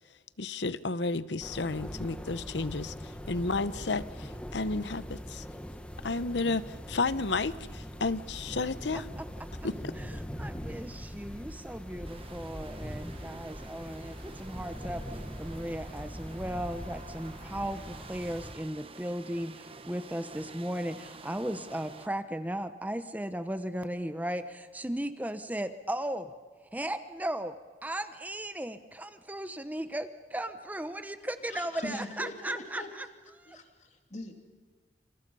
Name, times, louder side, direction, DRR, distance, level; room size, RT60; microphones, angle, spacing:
voice 1, 0.4-5.4 6.0-9.1 9.6-9.9, left 3 dB, 70° left, 15 dB, 0.9 m, -32 dB
sound 1, 1.4-18.5, equal, 5° left, 1.5 m, -42 dB
voice 2, 8.9-9.5 10.0-26.3 26.7-27.6 27.8-33.1 33.4-33.6, right 1 dB, 10° right, 10 dB, 0.9 m, -36 dB
sound 2, 12.0-22.1, right 3 dB, 30° right, 1.1 m, -49 dB
voice 3, 31.5-32.9 33.5-34.3, left 1 dB, 40° left, 4 dB, 2.9 m, -41 dB
28.5 x 27.5 x 5.5 m, 1.5 s
head